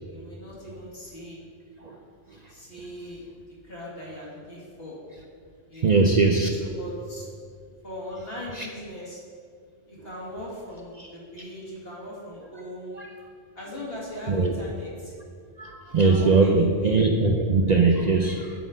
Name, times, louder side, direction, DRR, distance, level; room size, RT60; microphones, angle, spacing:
voice 1, 0.0-1.4 2.5-3.2 3.6-5.0 5.7-6.1 6.6-7.3 7.8-9.2 9.9-13.0 13.6-15.2 16.0-17.0, left 1 dB, 60° left, -6 dB, 2.3 m, -39 dB
voice 2, 5.8-6.5 8.6-8.7 13.0-13.1 14.3-14.5 15.6-18.5, right 3 dB, 50° right, 2 dB, 0.5 m, -21 dB
11.0 x 4.3 x 5.0 m, 2.2 s
omnidirectional pair, 1.1 m